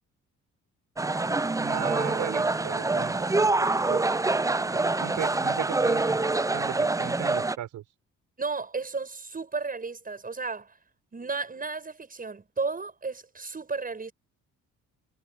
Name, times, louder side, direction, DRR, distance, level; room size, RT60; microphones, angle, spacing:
sound 1, 1.0-7.6, right 3 dB, 10° right, 0.6 m, -26 dB
voice 1, 1.6-3.1 3.9-4.0 4.7-6.0 6.5-7.8, right 12 dB, 80° right, 6.1 m, -36 dB
voice 2, 8.4-10.8 11.1-14.1, right 4 dB, 30° right, 7.2 m, -33 dB
cardioid pair, 90°, 30 cm